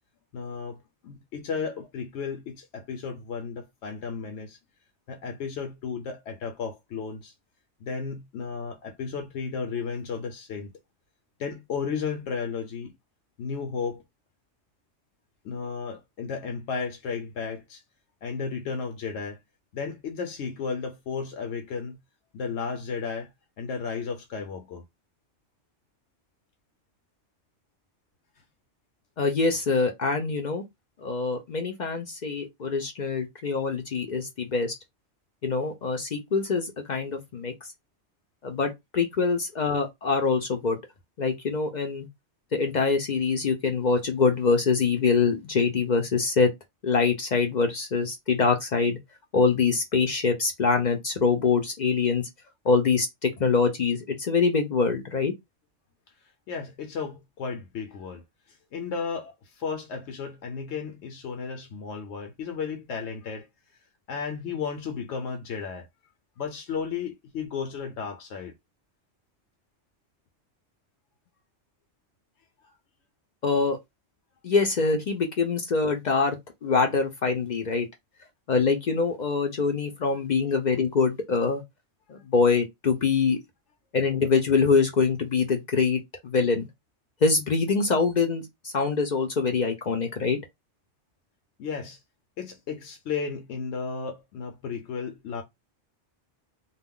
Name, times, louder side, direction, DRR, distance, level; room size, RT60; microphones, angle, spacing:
voice 1, 0.3-4.6 5.1-7.3 7.8-10.7 11.4-12.9 13.4-14.0 15.4-17.8 18.2-19.4 19.7-22.0 22.3-23.3 23.6-24.8 56.2-63.5 64.1-65.9 66.4-68.5 72.6-72.7 91.6-92.0 92.4-95.4, left 5 dB, 75° left, 0.9 m, -34 dB
voice 2, 29.2-30.6 31.0-34.7 35.4-37.5 38.4-40.8 41.2-42.1 42.5-46.5 46.8-49.0 49.3-52.3 52.7-55.3 73.4-73.8 74.4-76.4 76.6-77.9 78.5-81.6 82.1-83.4 83.9-86.7 87.2-90.4, left 4 dB, 55° left, 0.5 m, -24 dB
2.3 x 2.1 x 3.6 m
omnidirectional pair, 1.2 m